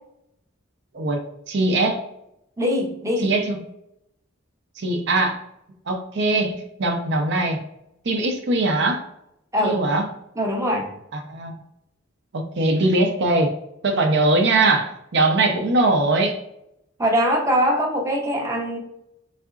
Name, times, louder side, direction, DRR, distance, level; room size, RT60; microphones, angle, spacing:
voice 1, 0.9-2.0 3.2-3.6 4.8-5.4 5.9-7.6 8.0-9.0 9.6-10.1 11.1-11.5 12.3-13.5 13.8-16.4, right 2 dB, 60° right, 4 dB, 0.6 m, -21 dB
voice 2, 2.6-3.3 9.5-9.8 10.4-10.9 17.0-18.8, equal, 15° right, 1 dB, 0.6 m, -22 dB
4.0 x 3.6 x 2.4 m, 0.80 s
head